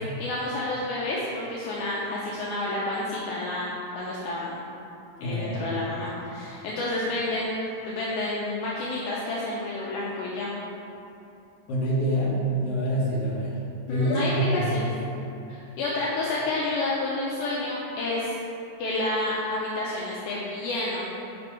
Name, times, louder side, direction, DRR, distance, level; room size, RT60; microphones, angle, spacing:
voice 1, 0.2-4.6 5.2-10.5 13.9-14.9 15.5-18.3 18.8-21.0, left 2 dB, 80° left, -6 dB, 1.8 m, -30 dB
voice 2, 5.2-5.7 11.7-13.5 13.9-14.7, right 1 dB, 60° left, -7 dB, 1.7 m, -26 dB
7.6 x 5.2 x 3.2 m, 2.9 s
omnidirectional pair, 4.2 m